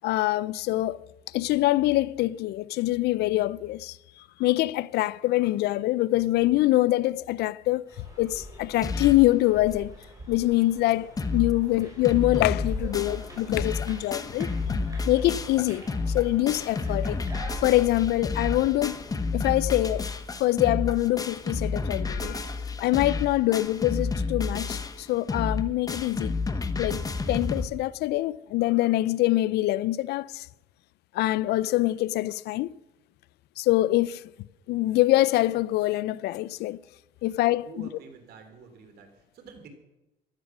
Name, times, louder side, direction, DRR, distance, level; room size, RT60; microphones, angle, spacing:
voice 1, 0.0-1.0 1.3-4.0 4.4-7.8 8.2-9.9 10.3-17.2 17.6-19.0 19.3-20.1 20.4-22.5 22.8-26.3 26.8-30.5 31.1-32.8 33.6-34.2 34.7-36.8 37.2-37.9, left 17 dB, 75° left, 0.5 m, -24 dB
sound 1, 7.9-20.4, right 1 dB, 20° right, 6.9 m, -44 dB
sound 2, 8.8-9.3 9.7-9.8 10.0-10.1 10.6-10.7 10.9-11.5 11.8-27.6, left 4 dB, 20° left, 1.1 m, -30 dB
voice 2, 37.6-39.7, right 4 dB, 70° right, 3.2 m, -47 dB
15.5 x 11.0 x 6.1 m
cardioid pair, 110°, 17 cm